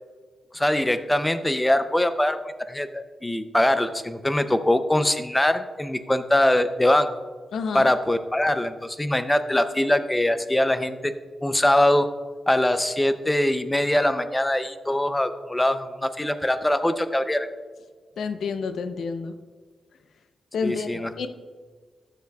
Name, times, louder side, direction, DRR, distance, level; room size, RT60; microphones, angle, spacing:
voice 1, 0.5-7.1 7.7-11.2 11.4-12.1 12.5-17.5 20.6-21.1, left 1 dB, 10° left, 10 dB, 0.5 m, -22 dB
voice 2, 7.5-7.9 18.2-19.3 20.5-21.3, left 5 dB, 80° left, 9 dB, 0.6 m, -29 dB
12.0 x 6.7 x 2.3 m, 1.5 s
cardioid pair, 100°, 0 cm